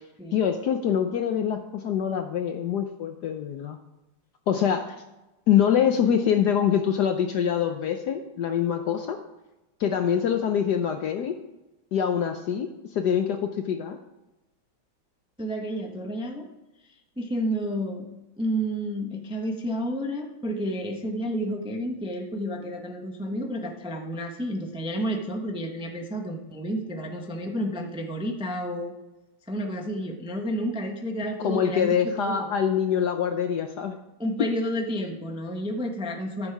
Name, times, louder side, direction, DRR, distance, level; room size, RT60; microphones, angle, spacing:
voice 1, 0.3-3.8 4.5-5.0 5.5-9.2 9.8-11.3 11.9-14.0 31.4-34.0 34.4-34.5, left 8 dB, 65° left, 6 dB, 1.1 m, -24 dB
voice 2, 15.4-16.5 17.2-18.1 18.4-29.0 29.5-32.5 34.2-36.5, equal, 5° right, 2 dB, 0.6 m, -30 dB
13.0 x 7.3 x 4.7 m, 1.0 s
omnidirectional pair, 2.3 m